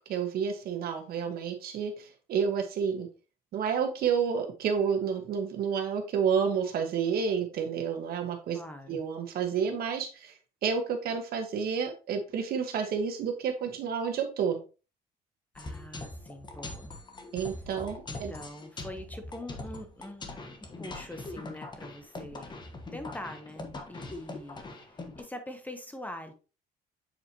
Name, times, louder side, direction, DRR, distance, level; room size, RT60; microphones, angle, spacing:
voice 1, 0.0-3.1 3.5-8.6 8.9-14.6 17.3-18.3, right 6 dB, 65° right, 1.4 m, -30 dB
voice 2, 8.5-9.0 15.5-16.9 18.1-20.4 20.8-22.5 22.9-26.3, left 1 dB, 10° left, 0.9 m, -43 dB
sound 1, 15.6-25.2, left 2 dB, 25° left, 1.2 m, -42 dB
7.7 x 4.2 x 2.9 m
cardioid pair, 110°, 17 cm